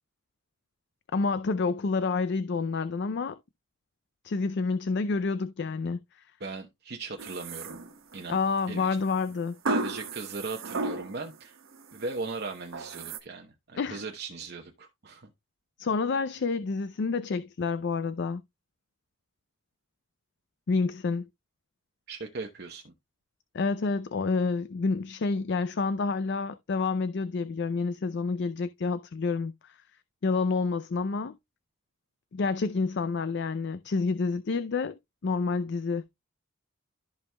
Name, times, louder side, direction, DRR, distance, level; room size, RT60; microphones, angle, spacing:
voice 1, 1.1-3.4 4.2-6.0 8.3-9.6 13.8-14.0 15.8-18.4 20.7-21.3 23.5-29.8 30.2-31.3 32.3-35.0 35.2-36.1, left 4 dB, 55° left, 0.4 m, -28 dB
voice 2, 6.4-7.8 8.1-8.4 8.7-9.0 9.7-11.6 11.9-15.3 22.1-22.9, right 3 dB, 50° right, 0.9 m, -38 dB
sound 1, 7.2-8.3 9.7-11.3 11.7-12.2 12.7-13.2, right 2 dB, 85° right, 1.4 m, -34 dB
14.0 x 5.2 x 2.2 m
head